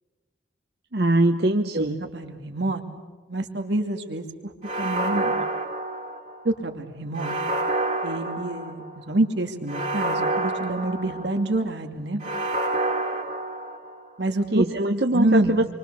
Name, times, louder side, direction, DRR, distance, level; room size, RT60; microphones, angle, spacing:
voice 1, 0.9-2.0 14.5-15.7, right 1 dB, 60° right, 6 dB, 0.9 m, -22 dB
voice 2, 1.7-2.8 3.3-4.5 4.8-5.4 6.4-7.3 8.0-12.2 14.2-14.6 15.1-15.6, right 1 dB, 80° right, 4 dB, 2.4 m, -27 dB
sound 1, 4.6-6.5 7.1-9.0 9.7-11.5 12.2-14.1, right 2 dB, 40° right, 2.4 m, -28 dB
27.5 x 24.0 x 6.9 m, 1.4 s
head